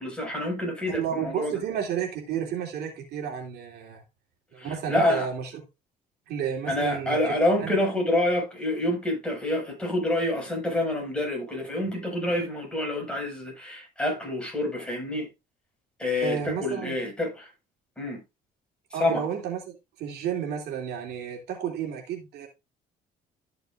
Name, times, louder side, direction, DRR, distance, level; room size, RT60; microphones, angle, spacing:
voice 1, 0.0-1.6 4.6-5.3 6.7-15.3 16.0-17.5 18.0-18.2 18.9-19.2, left 1 dB, 5° left, 5.7 m, -27 dB
voice 2, 0.9-4.0 4.5-5.5 6.3-7.2 7.6-7.7 16.2-16.9 18.9-22.5, right 8 dB, 75° right, 2.8 m, -32 dB
13.0 x 6.8 x 2.5 m
cardioid pair, 110°, 17 cm